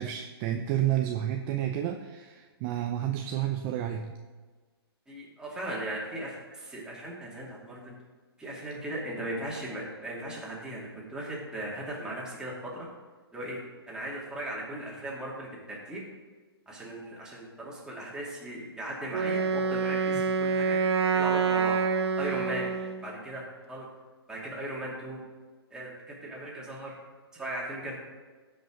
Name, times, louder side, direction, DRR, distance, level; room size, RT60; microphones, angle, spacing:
voice 1, 0.0-4.1, right 11 dB, 30° right, 4 dB, 0.6 m, -30 dB
voice 2, 5.1-8.0 8.4-12.9 13.3-13.6 13.9-16.0 16.7-20.8 21.1-21.8 22.2-22.7 23.0-23.9 24.3-25.2 25.7-27.0 27.3-28.0, right 1 dB, 5° right, -5 dB, 2.6 m, -38 dB
Wind instrument woodwind instrument, 19.1-23.1, right 5 dB, 85° right, 0.8 m, -27 dB
16.0 x 5.5 x 3.9 m, 1.4 s
hypercardioid pair, 130°, 13 cm